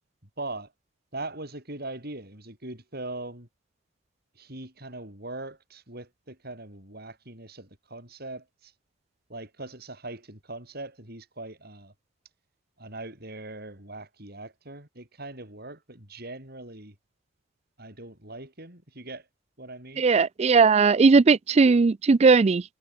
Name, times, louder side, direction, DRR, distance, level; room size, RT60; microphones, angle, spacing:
voice 1, 0.4-0.7 1.1-3.5 4.4-8.7 9.3-11.9 12.8-17.0 17.8-19.3 19.6-20.0, right 2 dB, 50° right, 7.5 m, -40 dB
voice 2, 20.0-22.6, right 4 dB, 30° right, 0.3 m, -18 dB
head